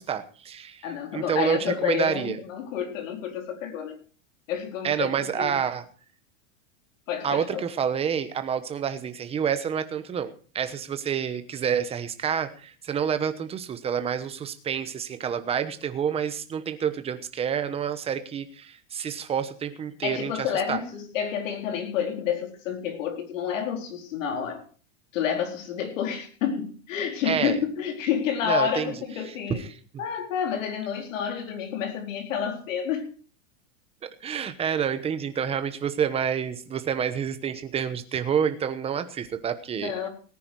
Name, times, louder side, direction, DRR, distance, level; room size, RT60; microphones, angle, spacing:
voice 1, 0.0-0.9 1.1-2.4 4.8-5.8 7.2-20.8 27.2-27.6 28.4-28.9 29.3-29.7 34.2-40.1, right 8 dB, 15° right, 10 dB, 1.0 m, -28 dB
voice 2, 0.8-4.0 4.5-5.6 7.1-7.6 20.0-24.6 25.1-29.6 30.0-33.2 39.8-40.1, left 8 dB, 70° left, 4 dB, 4.3 m, -29 dB
18.0 x 9.8 x 4.7 m, 0.41 s
supercardioid pair, 160°, 40 cm